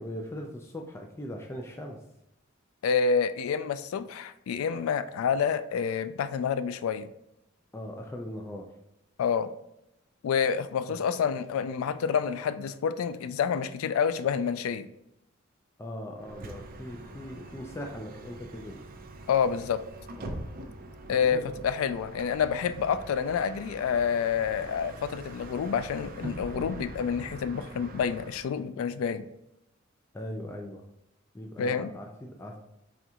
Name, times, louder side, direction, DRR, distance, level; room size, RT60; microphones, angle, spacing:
voice 1, 0.0-2.0 7.7-8.7 10.9-11.0 15.8-18.8 20.2-20.4 21.3-21.6 30.1-30.8 31.3-32.6, equal, 15° left, 1 dB, 0.3 m, -40 dB
voice 2, 2.8-7.1 9.2-9.5 10.2-14.9 19.3-19.8 21.1-29.3 31.6-31.9, left 6 dB, 90° left, 14 dB, 0.3 m, -28 dB
Bus, 16.2-28.6, right 1 dB, 45° right, 0.5 m, -44 dB
4.3 x 3.7 x 2.3 m, 0.84 s
head